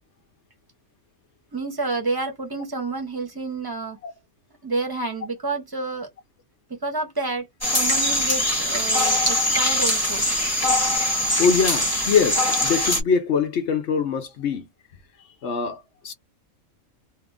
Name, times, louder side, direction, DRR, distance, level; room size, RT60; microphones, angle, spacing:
voice 1, 1.5-4.0 4.6-6.1 6.7-7.5 7.7-10.3, right 3 dB, 20° right, 0.8 m, -29 dB
sound 1, 7.6-13.0, left 1 dB, 10° left, 1.2 m, -22 dB
voice 2, 11.4-14.7 15.4-16.1, left 6 dB, 60° left, 0.9 m, -23 dB
2.8 x 2.4 x 3.4 m
omnidirectional pair, 1.4 m